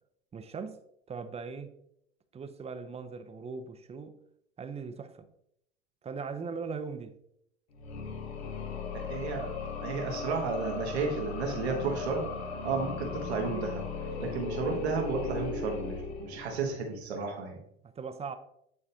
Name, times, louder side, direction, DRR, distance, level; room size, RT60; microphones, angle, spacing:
voice 1, 0.3-0.8 1.1-1.7 2.3-4.2 4.6-5.3 6.0-7.1 17.8-18.4, right 5 dB, 20° right, 0.5 m, -39 dB
sound 1, 7.7-16.8, left 5 dB, 85° left, 1.0 m, -37 dB
voice 2, 8.9-9.5 9.8-12.3 12.6-13.8 14.2-17.6, right 4 dB, 90° right, 1.3 m, -32 dB
8.8 x 4.1 x 2.7 m
hypercardioid pair, 90°, 32 cm